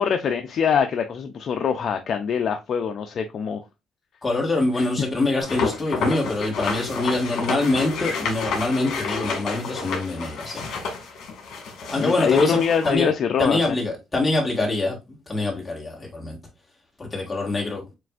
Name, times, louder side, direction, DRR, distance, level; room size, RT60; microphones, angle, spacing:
voice 1, 0.0-3.6 4.8-4.9 12.0-13.8, left 7 dB, 50° left, 0.5 m, -23 dB
voice 2, 4.2-10.6 11.9-13.1 13.4-16.4 17.0-17.9, left 2 dB, 15° left, 1.6 m, -25 dB
sound 1, 5.4-12.9, left 4 dB, 70° left, 1.8 m, -30 dB
7.5 x 2.5 x 2.4 m
cardioid pair, 135°, 0 cm